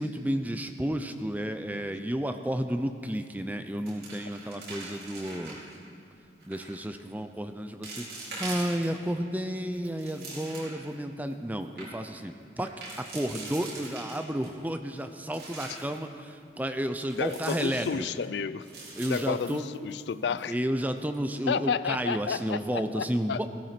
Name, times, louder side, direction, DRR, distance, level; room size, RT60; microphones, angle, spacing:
voice 1, 0.0-5.6 6.5-12.7 13.0-18.1 19.0-19.7 20.1-23.5, equal, 10° right, 7 dB, 0.6 m, -32 dB
sound 1, 3.1-3.4 3.7-5.7 6.4-6.8 7.3-7.4 7.8-9.1 9.6-10.9 11.3-11.4 11.6-11.9 12.6-14.5 15.0-16.0 17.1-18.2 18.6-20.1 20.4-20.5 21.0-21.2, right 2 dB, 60° right, 5.1 m, -42 dB
voice 2, 17.2-18.7 19.1-20.5 21.5-23.4, left 6 dB, 75° left, 16 dB, 0.4 m, -31 dB
17.0 x 13.0 x 6.0 m, 2.4 s
head